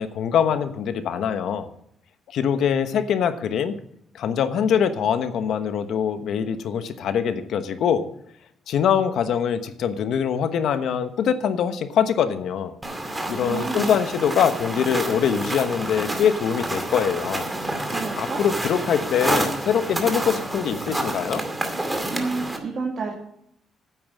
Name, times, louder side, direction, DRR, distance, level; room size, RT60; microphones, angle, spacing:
voice 1, 0.0-1.7 2.3-3.7 4.1-8.0 8.7-12.7 13.3-17.5 18.2-21.4, left 8 dB, 75° left, 10 dB, 1.1 m, -23 dB
sound 1, 12.8-22.6, right 1 dB, 15° right, 2.3 m, -28 dB
voice 2, 13.4-14.0 17.9-18.4 22.1-23.1, right 4 dB, 50° right, -2 dB, 2.3 m, -30 dB
9.3 x 8.8 x 7.3 m, 0.73 s
cardioid pair, 90°, 0 cm